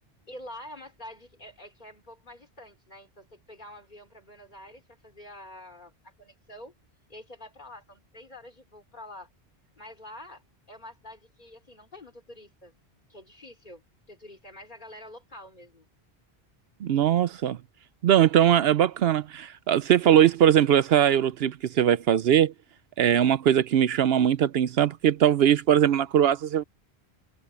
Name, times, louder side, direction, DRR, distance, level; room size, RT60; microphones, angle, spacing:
voice 1, 0.2-6.7 7.1-9.3 9.8-10.4 10.7-12.7 13.1-15.9, left 1 dB, 45° left, 4.1 m, -47 dB
voice 2, 16.8-17.6 18.0-22.5 23.0-26.6, right 10 dB, 70° right, 0.8 m, -21 dB
omnidirectional pair, 1.1 m